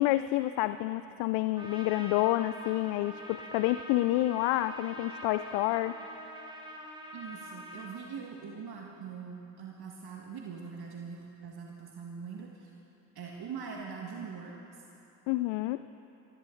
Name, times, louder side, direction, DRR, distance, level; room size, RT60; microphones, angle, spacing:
voice 1, 0.0-6.0 15.3-15.8, left 16 dB, 65° left, 13 dB, 0.5 m, -28 dB
Trumpet, 1.5-8.0, equal, 10° right, 2.3 m, -45 dB
voice 2, 7.1-12.7 13.2-14.8, right 6 dB, 50° right, -1 dB, 1.7 m, -42 dB
19.0 x 16.5 x 3.9 m, 2.9 s
hypercardioid pair, 50°, 48 cm